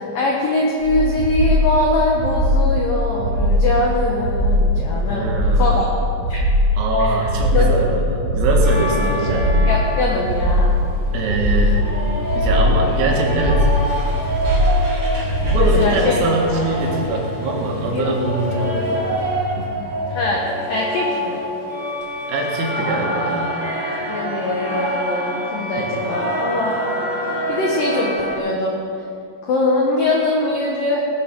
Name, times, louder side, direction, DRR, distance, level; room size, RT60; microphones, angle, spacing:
voice 1, 0.1-5.9 6.3-6.4 7.0-7.3 7.5-7.7 9.7-10.7 11.3-11.4 15.5-16.1 17.5-18.2 18.5-18.8 20.1-20.4 20.7-21.4 24.1-26.8 27.5-28.8 29.4-31.0, left 2 dB, 90° left, -2 dB, 1.9 m, -22 dB
sound 1, 0.8-15.8, equal, 50° right, 2.9 m, -20 dB
voice 2, 5.1-5.9 6.8-9.5 11.1-11.9 12.4-13.8 15.4-19.2 19.6-19.7 22.3-23.5 25.8-25.9, right 2 dB, 80° right, -1 dB, 4.6 m, -23 dB
sound 2, 8.6-28.4, equal, 25° right, 3.0 m, -26 dB
sound 3, 11.3-20.3, left 4 dB, 65° left, 4.2 m, -34 dB
19.5 x 8.6 x 5.4 m, 2.5 s
omnidirectional pair, 6.0 m